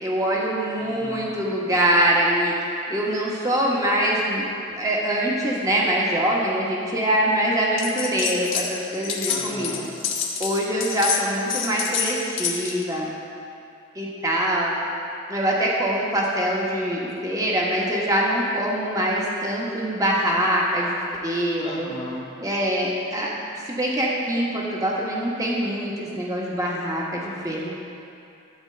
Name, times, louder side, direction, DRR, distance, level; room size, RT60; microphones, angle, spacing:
voice 1, 0.0-2.5 2.9-9.8 10.4-13.1 13.9-14.7 15.3-21.0 21.2-21.9 22.4-23.4 23.7-27.7, right 1 dB, 20° right, -4 dB, 1.4 m, -24 dB
voice 2, 0.8-1.4 9.3-9.9 21.6-22.3, left 1 dB, 25° left, -3 dB, 1.1 m, -37 dB
sound 1, 7.8-8.7 8.9-12.8, left 7 dB, 80° left, 1.2 m, -28 dB
12.5 x 4.5 x 7.9 m, 2.6 s
head